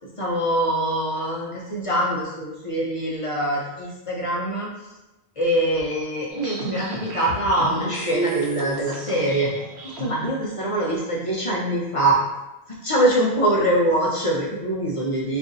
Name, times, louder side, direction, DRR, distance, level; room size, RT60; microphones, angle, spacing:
voice 1, 0.0-4.7 5.4-9.5 9.8-12.2 12.7-15.4, right 1 dB, 50° left, -4 dB, 0.4 m, -23 dB
sound 1, 6.3-10.3, right 4 dB, 75° right, 0.9 m, -32 dB
2.5 x 2.4 x 3.9 m, 1.0 s
omnidirectional pair, 1.1 m